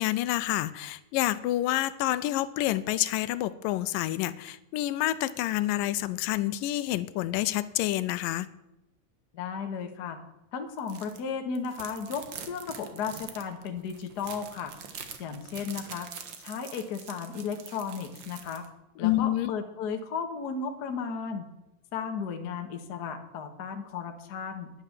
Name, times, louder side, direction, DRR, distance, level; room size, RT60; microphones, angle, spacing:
voice 1, 0.0-8.5 19.0-19.5, left 15 dB, 90° left, 15 dB, 2.3 m, -28 dB
voice 2, 9.3-10.2 10.5-14.7 15.2-16.1 16.4-18.6 19.0-21.5 21.9-24.7, left 6 dB, 50° left, 5 dB, 1.2 m, -34 dB
sound 1, 10.8-11.2 11.5-18.6, right 7 dB, 65° right, 1.1 m, -45 dB
11.0 x 10.0 x 7.3 m, 0.91 s
omnidirectional pair, 3.9 m